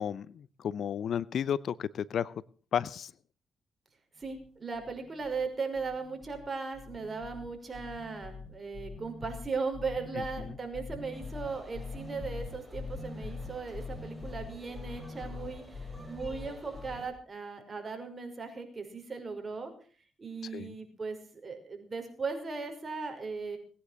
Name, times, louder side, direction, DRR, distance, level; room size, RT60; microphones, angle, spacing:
voice 1, 0.0-2.3 2.7-3.1 20.5-20.7, left 8 dB, 70° left, 20 dB, 0.7 m, -32 dB
sound 1, 4.2-4.5 4.7-5.5 5.7-6.5 6.7-17.0, left 4 dB, 45° left, 7.2 m, -43 dB
voice 2, 4.2-19.7 20.2-23.6, right 4 dB, 40° right, 5 dB, 5.6 m, -38 dB
sound 2, 11.1-17.1, equal, 5° right, 6.8 m, -51 dB
20.0 x 10.0 x 6.5 m, 0.43 s
cardioid pair, 65°, 0 cm